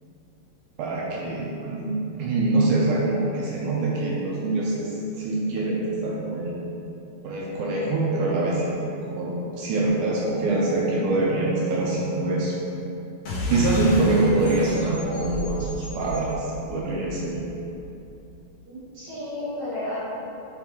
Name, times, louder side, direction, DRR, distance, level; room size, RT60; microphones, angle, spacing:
voice 1, 0.8-6.6 7.2-12.5 13.5-17.4, right 2 dB, 80° right, -4 dB, 1.9 m, -24 dB
sound 1, 13.2-18.2, left 1 dB, 55° left, 2.4 m, -32 dB
voice 2, 18.7-20.0, left 1 dB, 60° right, -10 dB, 2.1 m, -32 dB
6.1 x 3.7 x 4.4 m, 2.8 s
omnidirectional pair, 4.3 m